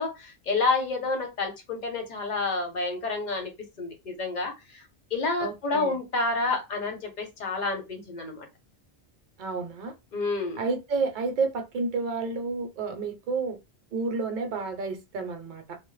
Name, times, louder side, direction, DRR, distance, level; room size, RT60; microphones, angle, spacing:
voice 1, 0.0-3.5 3.8-4.8 5.1-8.5 10.1-10.6, left 3 dB, 50° left, 0.8 m, -29 dB
voice 2, 5.4-6.0 9.4-9.9 10.6-13.6 13.9-15.8, right 4 dB, 55° right, 0.7 m, -30 dB
2.1 x 2.0 x 3.0 m
omnidirectional pair, 1.1 m